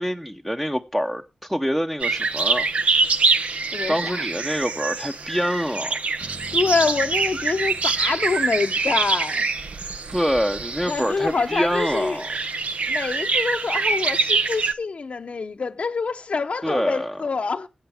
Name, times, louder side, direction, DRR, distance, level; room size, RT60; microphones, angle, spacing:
voice 1, 0.0-2.7 3.9-6.0 10.1-12.3 16.6-17.2, equal, 5° right, 0.7 m, -25 dB
sound 1, 2.0-14.7, right 4 dB, 80° right, 0.7 m, -25 dB
voice 2, 3.7-4.3 6.5-9.4 10.9-12.2 12.9-17.7, left 4 dB, 70° left, 0.7 m, -26 dB
sound 2, 6.2-10.2, right 1 dB, 45° right, 3.5 m, -46 dB
20.0 x 8.0 x 3.4 m
cardioid pair, 50°, 2 cm